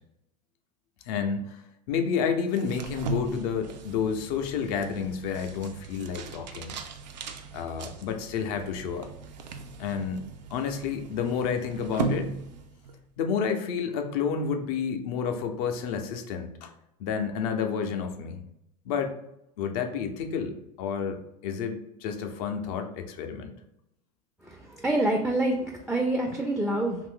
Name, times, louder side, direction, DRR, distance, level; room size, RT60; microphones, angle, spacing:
voice 1, 1.1-1.6 1.9-6.8 7.5-9.1 9.8-10.2 10.5-12.3 13.2-16.7 17.0-18.4 18.9-19.1 19.6-23.5, left 6 dB, 60° left, 6 dB, 0.6 m, -30 dB
sound 1, 2.5-13.0, right 4 dB, 90° right, 0.4 m, -38 dB
voice 2, 24.4-27.0, right 1 dB, ahead, 2 dB, 0.3 m, -27 dB
2.7 x 2.5 x 3.6 m, 0.84 s
hypercardioid pair, 100°, 21 cm